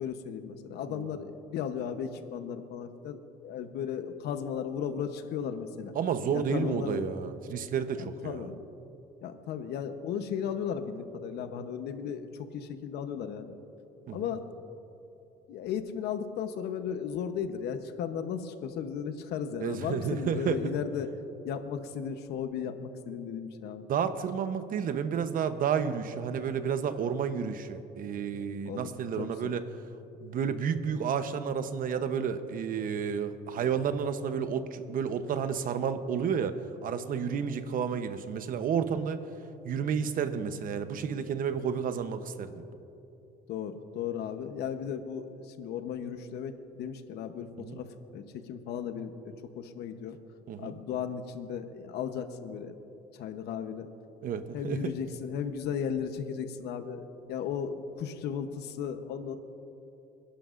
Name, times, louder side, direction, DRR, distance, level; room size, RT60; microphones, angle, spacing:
voice 1, 0.0-5.9 6.3-7.1 8.2-8.6 9.2-13.5 14.1-14.5 15.5-21.1 21.4-23.9 28.6-29.5 43.5-50.2 50.6-52.8 53.1-53.9 54.5-59.4, left 7 dB, 75° left, 9 dB, 1.0 m, -35 dB
voice 2, 5.9-8.5 14.1-14.3 19.6-20.6 23.9-29.6 30.2-36.6 36.8-39.2 39.6-42.6 47.6-47.8 50.5-50.7 54.2-54.9, right 7 dB, 55° right, 10 dB, 0.9 m, -31 dB
27.0 x 11.5 x 2.6 m, 2.9 s
cardioid pair, 110°, 17 cm